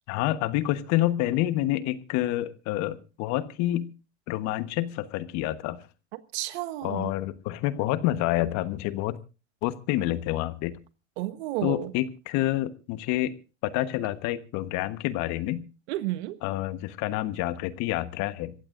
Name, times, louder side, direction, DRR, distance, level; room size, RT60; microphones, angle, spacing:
voice 1, 0.1-3.9 4.3-5.8 6.8-9.2 9.6-10.8 11.6-13.3 13.6-15.7 16.4-18.5, left 15 dB, 50° left, 1.3 m, -28 dB
voice 2, 6.3-7.1 11.2-11.9 15.9-16.4, right 16 dB, 65° right, 1.5 m, -31 dB
27.0 x 15.5 x 2.6 m
hypercardioid pair, 110°, 36 cm